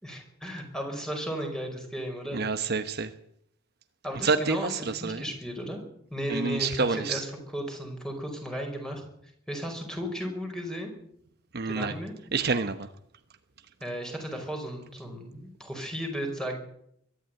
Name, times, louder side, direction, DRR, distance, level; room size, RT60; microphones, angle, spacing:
voice 1, 0.0-2.4 4.0-5.8 6.1-9.0 9.5-10.9 11.7-12.1 13.8-16.6, equal, 5° left, 3 dB, 5.3 m, -35 dB
voice 2, 2.3-3.1 4.2-5.2 6.3-7.2 11.5-11.9 12.3-12.9, right 4 dB, 50° right, 9 dB, 1.0 m, -28 dB
22.5 x 12.5 x 9.2 m, 0.71 s
head